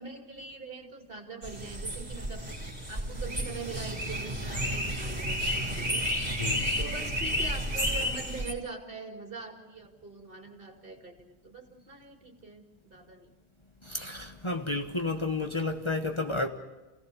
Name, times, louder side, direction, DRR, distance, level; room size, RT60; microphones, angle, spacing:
voice 1, 0.0-2.5 2.9-6.1 6.8-13.3, right 3 dB, 55° right, 2.7 m, -43 dB
sound 1, 1.4-8.5, equal, 40° right, 3.6 m, -31 dB
voice 2, 13.8-16.5, left 2 dB, 25° left, 1.2 m, -31 dB
28.5 x 17.0 x 6.8 m
omnidirectional pair, 1.1 m